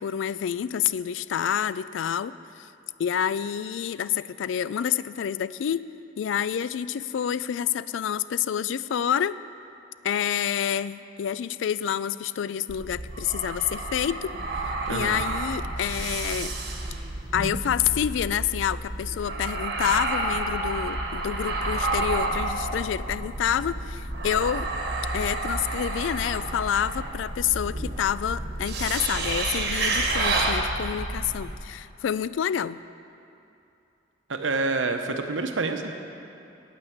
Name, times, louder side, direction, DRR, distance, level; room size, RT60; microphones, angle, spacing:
voice 1, 0.0-2.7 3.0-5.9 6.2-9.4 10.0-14.4 14.9-16.5 17.3-24.7 25.1-32.8, left 9 dB, 80° left, 16 dB, 0.3 m, -28 dB
sound 1, 12.7-31.5, right 2 dB, 55° right, 1.2 m, -30 dB
voice 2, 14.9-15.2 34.3-36.0, right 3 dB, 85° right, 6 dB, 0.9 m, -28 dB
9.0 x 8.8 x 7.9 m, 2.7 s
head